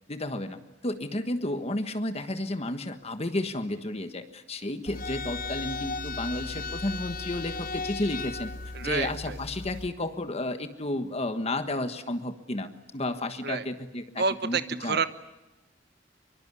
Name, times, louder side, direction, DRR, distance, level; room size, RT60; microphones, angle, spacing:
voice 1, 0.1-0.6 0.8-8.5 8.8-15.0, left 1 dB, 35° left, 9 dB, 1.4 m, -32 dB
sound 1, 4.9-9.9, left 3 dB, 50° left, 1.0 m, -36 dB
voice 2, 8.7-9.4 13.4-13.6 14.2-15.1, right 5 dB, 60° right, 12 dB, 1.1 m, -29 dB
24.0 x 23.5 x 9.8 m, 0.98 s
head